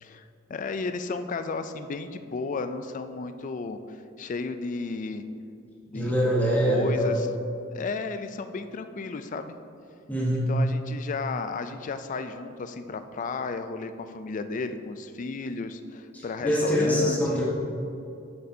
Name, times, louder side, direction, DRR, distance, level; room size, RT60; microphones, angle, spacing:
voice 1, 0.0-5.2 5.9-6.1 6.6-7.3 7.7-9.6 10.5-17.4, left 4 dB, 40° left, 9 dB, 0.4 m, -33 dB
voice 2, 5.9-7.2 10.1-10.5 16.1-17.5, equal, 10° left, -5 dB, 1.0 m, -24 dB
9.2 x 6.7 x 2.7 m, 2.6 s
head